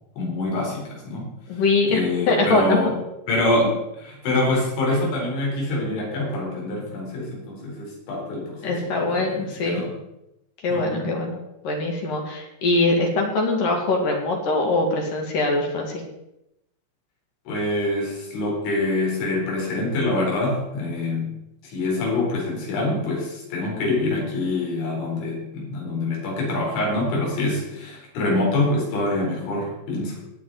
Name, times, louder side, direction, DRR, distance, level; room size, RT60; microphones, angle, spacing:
voice 1, 0.2-1.3 1.9-2.9 3.3-3.8 4.0-9.9 10.7-11.1 17.5-21.3 21.6-30.2, left 2 dB, 75° left, -2 dB, 6.6 m, -25 dB
voice 2, 1.5-2.0 2.3-2.8 3.5-3.7 8.6-9.9 10.6-11.4 11.6-16.0, left 2 dB, 50° left, 1 dB, 3.5 m, -22 dB
19.0 x 9.5 x 4.2 m, 0.88 s
omnidirectional pair, 5.4 m